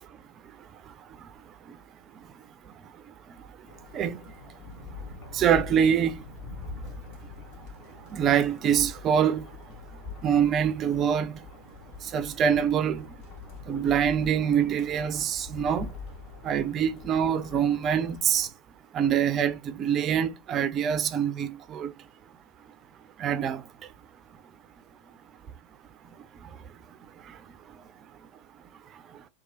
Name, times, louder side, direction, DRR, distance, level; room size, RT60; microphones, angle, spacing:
sound 1, 3.7-18.5, left 4 dB, 45° left, 1.0 m, -44 dB
voice 1, 5.3-6.2 8.1-9.5 10.2-11.4 12.1-13.0 13.7-15.9 16.4-18.5 18.9-21.9 23.2-23.6, right 8 dB, 30° right, 0.3 m, -25 dB
2.9 x 2.2 x 2.7 m
figure-of-eight pair, 90°, 0 cm